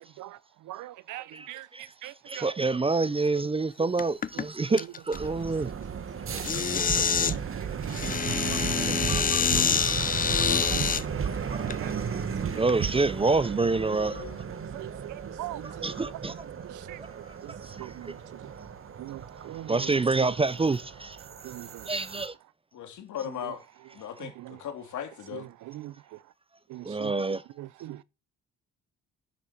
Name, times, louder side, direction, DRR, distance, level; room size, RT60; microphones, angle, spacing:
voice 1, 0.7-1.7 2.0-2.5 6.3-6.5 7.0-8.0 8.5-9.3 9.6-10.0 10.7-10.9 11.3-11.4 11.7-11.9 12.4-12.6 14.7-16.0 16.6-17.0 17.4-17.5 17.8-18.1 19.0-19.9 20.2-20.3 21.4-21.9 25.7-25.9 26.7-27.1 27.6-28.0, right 15 dB, 80° right, 0.7 m, -41 dB
voice 2, 2.3-5.7 8.5-8.6 9.1-10.0 10.4-10.8 11.5-11.6 12.5-14.2 15.8-16.5 17.0-17.1 17.5-18.1 19.7-21.2 21.9-22.3 26.8-27.4, right 3 dB, 20° right, 0.6 m, -28 dB
sound 1, 4.0-4.4 4.8-5.2 6.4-7.4 7.9-11.0 11.7-11.8 12.5-12.8, left 6 dB, 30° left, 0.6 m, -26 dB
sound 2, 5.1-22.3, right 7 dB, 45° right, 1.6 m, -35 dB
voice 3, 14.0-14.4 22.7-23.6 23.9-25.5, left 10 dB, 75° left, 3.0 m, -38 dB
10.5 x 7.3 x 6.6 m
cardioid pair, 90°, 30 cm